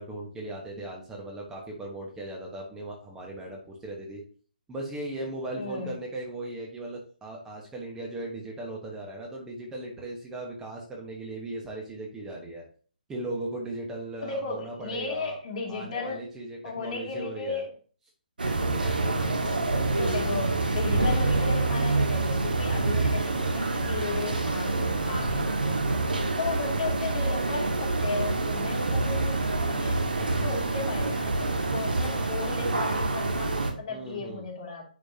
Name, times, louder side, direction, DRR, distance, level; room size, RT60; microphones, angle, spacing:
voice 1, 0.0-4.2 4.7-12.6 13.1-15.4 15.7-17.6 18.6-19.2 33.9-34.4, right 2 dB, 10° right, -2 dB, 1.2 m, -38 dB
voice 2, 5.5-5.9 14.2-16.3 16.6-17.7 19.1-19.3 20.0-30.0 30.4-34.8, left 4 dB, 40° left, -1 dB, 2.8 m, -35 dB
sound 1, 18.4-33.7, right 2 dB, 75° right, 1.7 m, -27 dB
10.0 x 5.1 x 2.8 m, 0.42 s
figure-of-eight pair, 140°, 5 cm